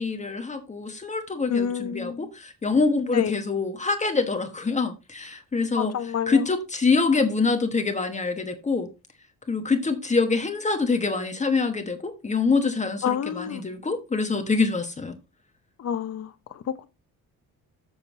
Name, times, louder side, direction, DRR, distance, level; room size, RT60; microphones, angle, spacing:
voice 1, 0.0-5.9 6.3-8.9 9.5-15.2, left 4 dB, 20° left, 1.1 m, -25 dB
voice 2, 1.5-2.3 3.1-3.4 5.8-6.5 13.0-13.6 15.8-16.9, left 8 dB, 50° left, 1.0 m, -29 dB
7.4 x 6.5 x 4.1 m
cardioid pair, 125°, 32 cm